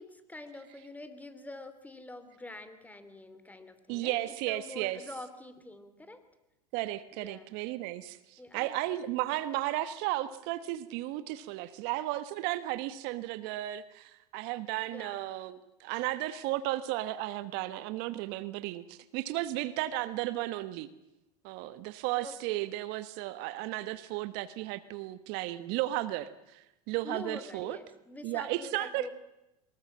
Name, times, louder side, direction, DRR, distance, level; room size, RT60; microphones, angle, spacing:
voice 1, 0.0-6.2 7.1-7.5 8.4-8.7 9.4-9.5 14.9-15.3 22.2-22.7 27.0-29.1, left 2 dB, 10° left, 11 dB, 2.9 m, -46 dB
voice 2, 3.9-5.0 6.7-20.9 21.4-27.8 28.2-29.1, right 16 dB, 55° right, 14 dB, 1.2 m, -34 dB
23.5 x 21.0 x 7.5 m, 0.89 s
hypercardioid pair, 100°, 20 cm